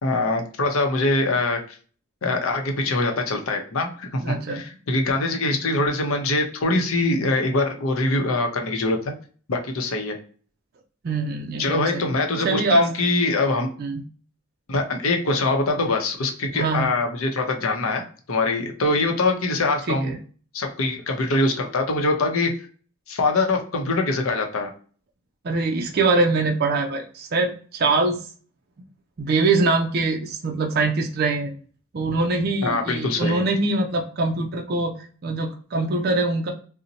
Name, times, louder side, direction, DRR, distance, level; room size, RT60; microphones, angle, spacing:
voice 1, 0.0-1.8 2.2-9.1 9.5-10.2 11.6-13.7 14.7-20.1 20.5-22.5 23.1-24.7 32.6-33.4, left 2 dB, 80° left, 4 dB, 0.6 m, -23 dB
voice 2, 4.2-4.6 11.0-12.0 12.4-12.9 13.8-14.0 16.5-16.9 19.9-20.2 25.4-28.2 29.2-31.5 31.9-34.9 35.2-36.5, right 3 dB, 45° right, 2 dB, 0.4 m, -23 dB
2.7 x 2.1 x 3.9 m, 0.42 s
head